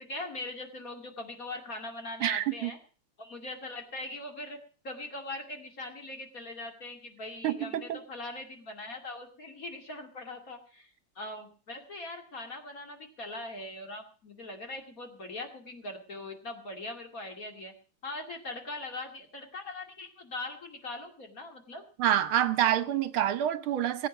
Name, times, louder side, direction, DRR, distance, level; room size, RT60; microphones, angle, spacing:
voice 1, 0.0-2.8 3.2-4.6 4.8-17.7 18.0-21.8, left 2 dB, 40° left, 2.7 m, -41 dB
voice 2, 2.2-2.7 7.4-8.0 22.0-24.1, right 11 dB, 75° right, 1.8 m, -27 dB
20.0 x 8.6 x 6.1 m
omnidirectional pair, 2.3 m